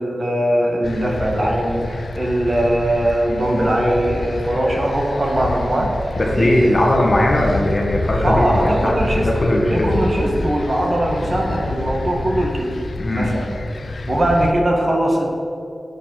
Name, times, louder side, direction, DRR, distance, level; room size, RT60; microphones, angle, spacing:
voice 1, 0.0-6.0 6.3-7.3 8.2-9.3 9.7-12.7 13.1-13.5 14.1-15.3, right 1 dB, 40° right, -1 dB, 1.8 m, -20 dB
sound 1, 0.8-14.5, left 2 dB, 60° left, 0.6 m, -28 dB
voice 2, 6.2-9.9 13.0-13.3, left 1 dB, 35° left, 0 dB, 1.7 m, -19 dB
8.4 x 7.5 x 7.8 m, 2.6 s
wide cardioid pair, 120°, 0 cm